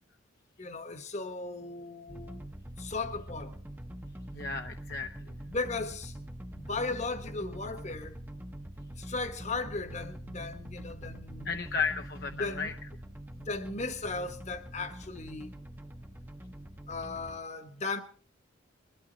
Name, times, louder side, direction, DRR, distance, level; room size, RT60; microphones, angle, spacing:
voice 1, 0.6-2.4 2.8-3.5 5.5-6.1 6.5-8.2 9.0-11.6 12.3-12.7 13.3-15.5 16.9-18.0, left 3 dB, 35° left, 1.3 m, -36 dB
sound 1, 2.1-17.4, right 1 dB, 10° right, 0.9 m, -44 dB
voice 2, 4.3-5.1 11.4-12.7, left 5 dB, 50° left, 0.8 m, -33 dB
22.0 x 12.5 x 4.0 m
head